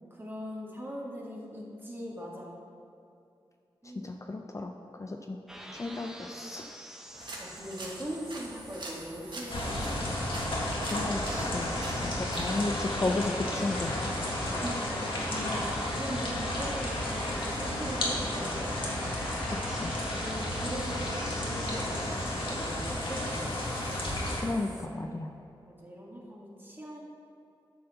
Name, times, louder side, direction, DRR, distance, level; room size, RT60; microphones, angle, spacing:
voice 1, 0.1-2.5 3.8-4.2 7.4-10.2 14.6-15.7 15.9-18.9 20.1-23.5 25.5-27.0, equal, 20° right, -3 dB, 1.9 m, -40 dB
voice 2, 4.0-4.7 5.0-5.4 5.7-6.6 10.8-13.9 19.7-19.9 24.4-25.3, left 2 dB, 35° left, 3 dB, 0.5 m, -33 dB
sound 1, 5.5-24.9, equal, 5° right, 0.8 m, -46 dB
sound 2, 7.1-12.6, right 2 dB, 55° right, 1.4 m, -44 dB
sound 3, 9.5-24.4, left 1 dB, 65° left, 1.7 m, -32 dB
9.3 x 4.2 x 6.8 m, 2.6 s
cardioid pair, 70°, 9 cm